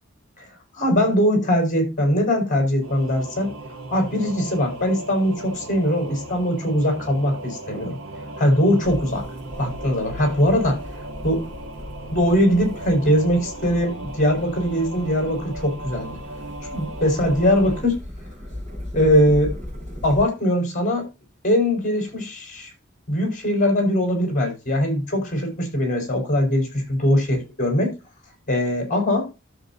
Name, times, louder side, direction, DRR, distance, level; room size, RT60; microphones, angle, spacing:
voice 1, 0.7-3.5 3.9-8.0 8.4-9.2 9.6-10.8 11.2-11.5 12.1-16.2 16.7-18.0 18.9-19.5 20.0-21.1 21.4-22.7 23.1-27.9 28.5-29.3, equal, 40° left, 5.6 m, -21 dB
Singing / Musical instrument, 2.8-17.8, right 2 dB, 70° right, 2.1 m, -37 dB
sound 1, 8.8-20.2, left 1 dB, 35° right, 5.7 m, -37 dB
13.0 x 7.7 x 2.8 m
head